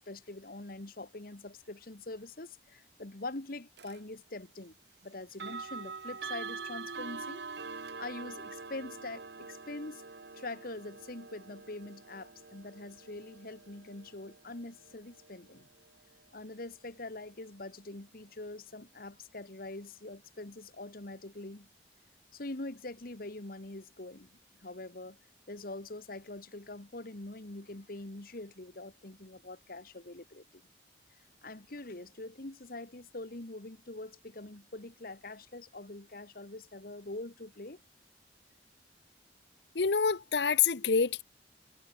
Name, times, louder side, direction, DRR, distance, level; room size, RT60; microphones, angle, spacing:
voice 1, 0.1-4.7 5.0-7.4 7.7-10.0 10.3-15.7 16.3-21.7 22.3-24.3 24.6-25.2 25.5-30.4 31.4-37.8, left 2 dB, 55° left, 1.6 m, -44 dB
sound 1, 3.8-4.0 5.3-16.2, right 4 dB, 70° right, 1.4 m, -45 dB
voice 2, 39.7-41.2, left 6 dB, 70° left, 0.8 m, -27 dB
head